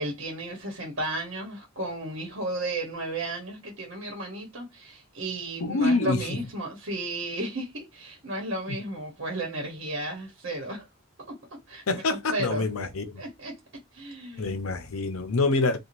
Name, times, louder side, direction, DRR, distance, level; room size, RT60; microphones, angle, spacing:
voice 1, 0.0-10.9 11.3-11.4 11.7-12.6 13.2-13.5 13.9-14.7, right 2 dB, 65° right, 1.0 m, -34 dB
voice 2, 5.6-6.3 8.7-8.8 11.9-13.2 14.4-15.8, left 3 dB, 80° left, 0.6 m, -26 dB
2.6 x 2.3 x 2.9 m
head